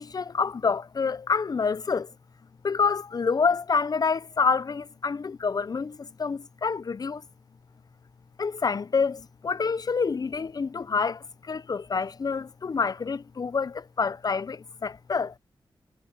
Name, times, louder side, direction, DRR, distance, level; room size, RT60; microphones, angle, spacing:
voice 1, 0.0-2.1 2.6-7.2 8.4-15.3, left 5 dB, 45° left, 0.6 m, -27 dB
cardioid pair, 75°, 9 cm